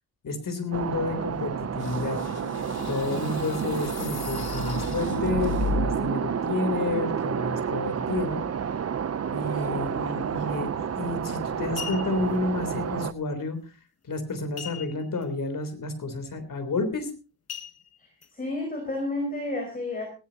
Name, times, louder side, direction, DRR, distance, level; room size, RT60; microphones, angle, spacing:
voice 1, 0.2-2.2 2.9-8.4 9.3-13.6 14.0-17.1, left 2 dB, 60° left, 9 dB, 3.6 m, -30 dB
sound 1, 0.7-13.1, right 7 dB, 40° right, 0.7 m, -30 dB
sound 2, 1.8-6.1, left 3 dB, 80° left, 2.1 m, -33 dB
voice 2, 9.5-9.9 18.0-20.1, left 2 dB, 25° left, 2 dB, 4.8 m, -32 dB
sound 3, 10.9-11.1 11.6-12.4 14.6-15.2 15.6-15.7 16.1-16.4 17.5-18.3 18.9-19.0, left 10 dB, 40° left, 1.0 m, -40 dB
19.5 x 16.0 x 2.9 m, 0.34 s
wide cardioid pair, 160°, 37 cm